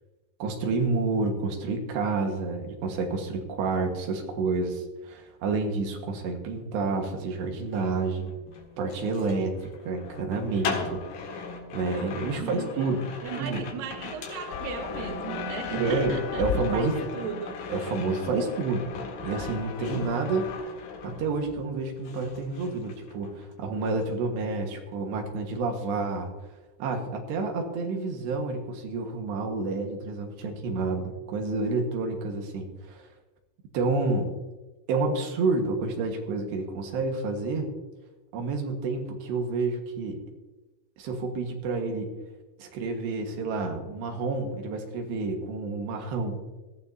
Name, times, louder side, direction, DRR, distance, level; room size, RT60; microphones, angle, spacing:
voice 1, 0.4-8.3 8.8-13.1 13.4-13.6 15.7-17.0 17.7-18.9 19.2-20.6 21.0-26.3 26.8-33.1 33.7-34.3 34.9-37.7 38.3-40.2 41.0-42.1 42.6-46.4, right 3 dB, 90° right, 3 dB, 3.7 m, -29 dB
sound 1, 7.6-21.7 22.0-23.5 23.8-24.1, left 5 dB, 70° left, 3.5 m, -39 dB
voice 2, 12.4-12.9 13.2-17.6, right 8 dB, 70° right, 5 dB, 2.5 m, -37 dB
sound 2, 14.5-20.6, left 11 dB, 90° left, 2.9 m, -38 dB
18.5 x 14.5 x 2.8 m, 1.2 s
omnidirectional pair, 4.8 m